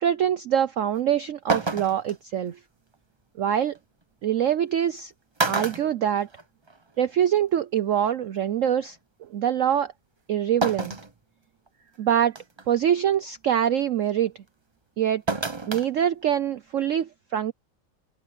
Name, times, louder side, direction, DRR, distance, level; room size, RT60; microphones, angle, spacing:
voice 1, 0.0-2.6 3.4-3.8 4.2-5.1 5.4-6.3 7.0-9.9 10.3-11.0 12.0-12.4 12.7-14.3 15.0-15.2 15.7-17.5, right 9 dB, 75° right, 0.7 m, -24 dB
sound 1, 1.0-1.1 1.5-2.2 3.8-3.9 4.8-5.0 5.4-6.8 7.1-7.2 8.4-8.5 10.6-11.1 11.7-11.8 12.4-12.7 15.3-15.9 16.2-16.3, right 3 dB, 25° right, 0.6 m, -28 dB
open air
omnidirectional pair, 2.1 m